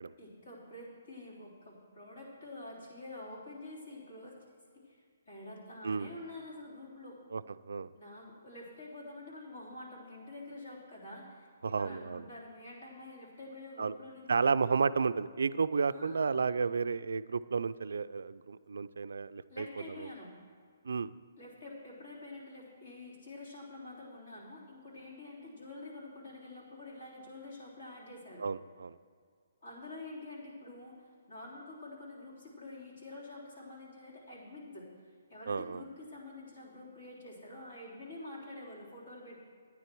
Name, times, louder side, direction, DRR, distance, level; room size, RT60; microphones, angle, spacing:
voice 1, 0.2-4.4 4.8-7.2 7.9-14.5 15.9-16.5 19.5-20.3 21.4-28.5 29.6-39.4, left 2 dB, 45° left, -5 dB, 3.4 m, -48 dB
voice 2, 7.3-7.9 11.6-12.2 13.8-13.9 14.3-19.7 20.0-20.1 20.8-21.1 28.4-29.0 35.5-35.8, right 5 dB, 85° right, 13 dB, 0.3 m, -32 dB
12.5 x 9.8 x 4.6 m, 2.1 s
hypercardioid pair, 175°, 0 cm